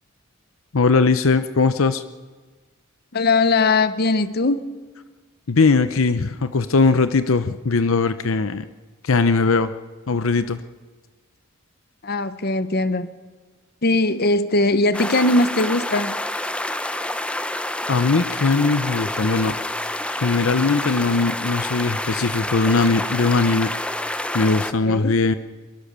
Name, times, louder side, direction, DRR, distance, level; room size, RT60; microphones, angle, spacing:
voice 1, 0.7-2.0 5.5-8.6 9.0-9.7 10.1-10.6 17.9-19.6 20.1-23.7 24.3-25.3, left 4 dB, 75° left, 11 dB, 0.7 m, -19 dB
voice 2, 3.1-4.6 12.0-13.1 13.8-16.1 24.9-25.1, left 2 dB, 50° left, 12 dB, 1.0 m, -20 dB
sound 1, 14.9-24.7, left 1 dB, 5° left, 0.8 m, -28 dB
23.0 x 22.0 x 6.8 m, 1.4 s
head